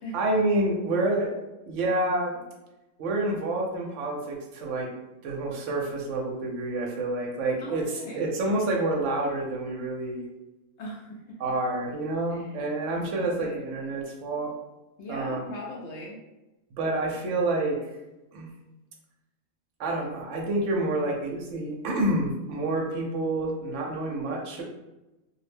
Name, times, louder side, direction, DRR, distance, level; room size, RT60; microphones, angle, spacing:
voice 1, 0.1-1.3 1.7-2.3 3.0-4.9 5.2-10.2 11.4-14.5 15.1-15.5 16.8-18.0 18.3-18.5 19.8-24.6, right 2 dB, 65° right, 0 dB, 0.9 m, -28 dB
voice 2, 7.6-8.3 10.8-11.4 12.3-12.5 13.2-13.6 15.0-16.2, left 1 dB, 65° left, -2 dB, 0.8 m, -40 dB
2.6 x 2.1 x 3.2 m, 0.99 s
omnidirectional pair, 1.5 m